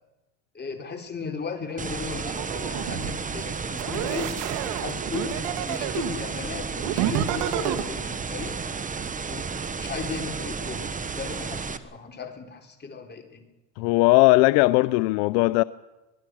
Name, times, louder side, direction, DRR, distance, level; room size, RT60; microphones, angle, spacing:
voice 1, 0.5-4.5 4.8-5.4 5.7-8.6 9.3-9.4 9.8-10.9 11.2-13.5, left 5 dB, 20° left, 3.6 m, -36 dB
sound 1, 1.7-3.0 4.3-5.1 5.4-6.5 6.8-7.3 7.7-7.8, right 5 dB, 50° right, 7.9 m, -55 dB
sound 2, 1.8-11.8, right 5 dB, 15° right, 1.1 m, -32 dB
sound 3, 2.2-3.1 3.8-6.2 6.8-7.8, right 11 dB, 75° right, 2.1 m, -29 dB
voice 2, 13.8-15.6, left 21 dB, 75° left, 0.7 m, -19 dB
25.0 x 19.5 x 6.2 m
supercardioid pair, 125°, 49 cm